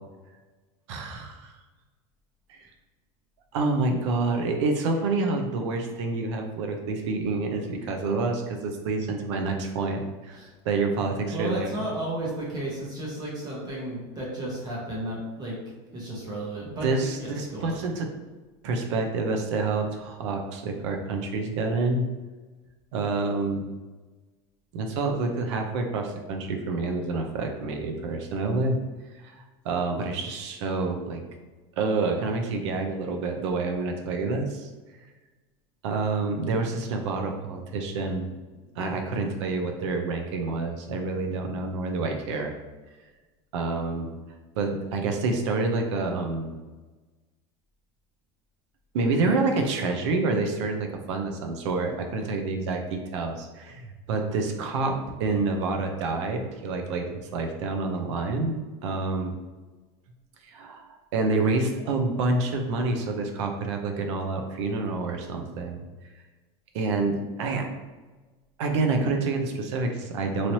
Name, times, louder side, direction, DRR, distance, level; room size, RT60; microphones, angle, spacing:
voice 1, 0.9-1.5 2.5-2.6 3.5-11.8 16.8-18.1 18.6-22.0 22.9-23.6 24.7-28.8 29.2-29.3 29.6-31.2 31.8-34.7 35.8-38.3 38.8-42.5 43.5-44.1 44.5-46.6 48.9-59.3 60.4-65.9 66.7-67.7 68.6-70.5, right 3 dB, 80° right, 3 dB, 0.6 m, -28 dB
voice 2, 11.3-15.6 15.9-16.9 17.2-17.8, right 1 dB, 30° right, -4 dB, 0.9 m, -33 dB
3.1 x 2.8 x 2.7 m, 1.2 s
supercardioid pair, 140°, 15 cm